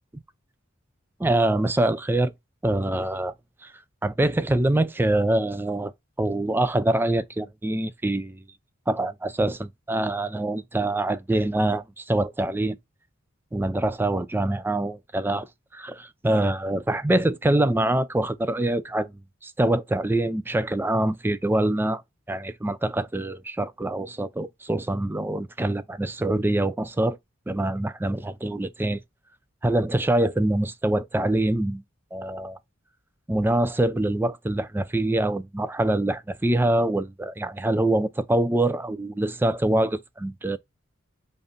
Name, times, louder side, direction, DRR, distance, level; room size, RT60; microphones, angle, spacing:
voice 1, 1.2-2.3 2.6-3.3 3.6-3.7 4.0-5.9 6.2-8.4 8.9-12.8 13.5-15.5 15.7-19.1 19.4-22.0 22.3-27.2 27.5-29.0 29.6-31.8 32.1-32.6 33.3-40.6, right 1 dB, 10° right, 0.4 m, -24 dB
5.4 x 2.5 x 3.7 m
head